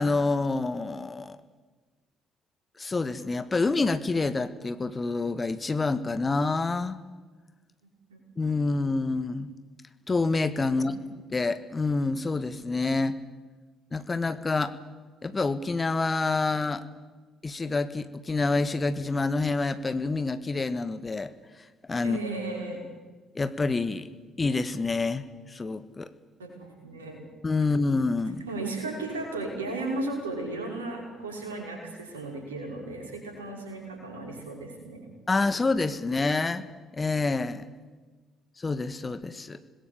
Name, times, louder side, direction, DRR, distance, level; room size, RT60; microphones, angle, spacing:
voice 1, 0.0-1.4 2.8-7.0 8.4-9.5 10.1-10.9 11.3-13.2 13.9-14.7 15.2-16.8 17.4-21.3 21.9-22.2 23.3-24.1 24.4-26.1 27.4-28.4 35.3-36.7 36.9-37.7 38.6-39.6, left 3 dB, 25° left, 12 dB, 1.5 m, -27 dB
voice 2, 22.0-22.8 26.4-27.2 28.5-35.0, right 2 dB, 80° right, 1 dB, 5.5 m, -35 dB
26.0 x 20.5 x 8.5 m, 1.3 s
figure-of-eight pair, 50°, 0 cm